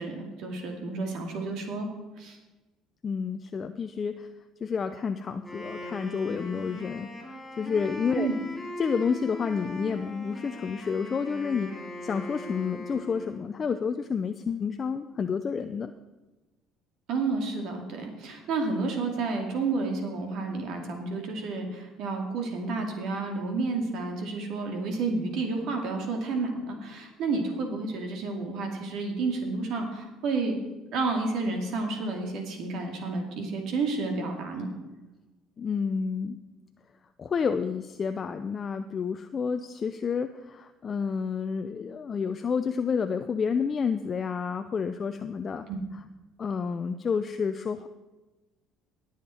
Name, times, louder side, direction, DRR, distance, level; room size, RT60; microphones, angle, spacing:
voice 1, 0.0-1.9 2.2-2.4 8.2-8.4 17.1-30.6 30.9-34.7 45.7-45.8, right 3 dB, 65° right, 3 dB, 2.4 m, -30 dB
voice 2, 3.0-4.3 4.6-7.1 7.6-8.3 8.8-11.7 12.0-15.9 35.6-36.4 37.2-45.7 46.4-47.9, left 6 dB, 35° left, 8 dB, 0.5 m, -30 dB
Wind instrument woodwind instrument, 5.3-13.5, left 1 dB, 5° left, 3.9 m, -40 dB
18.0 x 7.4 x 4.3 m, 1.1 s
supercardioid pair, 90°, 0 cm